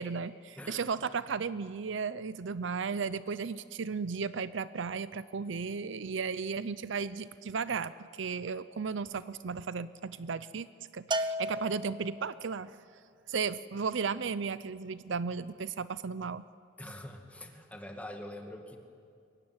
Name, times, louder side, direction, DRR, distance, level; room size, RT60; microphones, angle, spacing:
voice 1, 0.0-10.7 10.9-12.8 13.3-16.5, right 5 dB, 65° right, 15 dB, 0.6 m, -35 dB
Bell, 11.1-12.5, right 1 dB, 25° right, 0.8 m, -34 dB
voice 2, 16.8-18.8, left 1 dB, 5° left, 3 dB, 2.1 m, -44 dB
23.5 x 21.5 x 9.6 m, 2.3 s
head